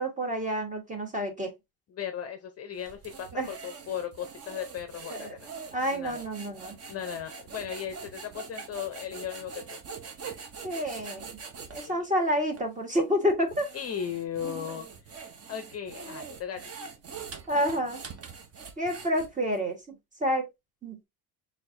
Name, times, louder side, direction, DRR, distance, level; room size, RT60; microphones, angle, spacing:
voice 1, 0.0-1.5 3.3-3.5 5.1-5.4 5.7-6.8 10.6-11.4 11.7-13.7 17.5-18.0 18.8-19.8 20.2-20.5 20.8-21.0, equal, 15° right, 1.3 m, -28 dB
voice 2, 1.9-5.5 5.9-6.2 6.9-9.8 11.9-12.1 13.7-16.6, left 9 dB, 35° left, 0.6 m, -37 dB
sound 1, 2.8-11.9 12.5-12.7 13.3-19.6, right 5 dB, 35° right, 0.8 m, -43 dB
4.5 x 3.4 x 2.6 m
cardioid pair, 125°, 43 cm